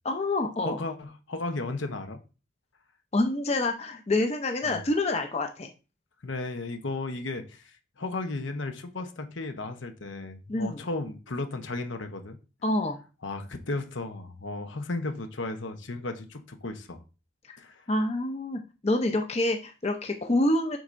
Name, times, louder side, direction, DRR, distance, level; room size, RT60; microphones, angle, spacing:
voice 1, 0.0-0.8 3.1-5.7 10.5-10.8 12.6-13.0 17.5-17.6 17.9-20.8, left 2 dB, 30° left, 0.7 m, -27 dB
voice 2, 0.6-2.2 4.6-4.8 6.2-12.4 13.2-17.0 17.6-17.8, left 2 dB, 70° left, 0.9 m, -35 dB
7.7 x 5.5 x 2.6 m
head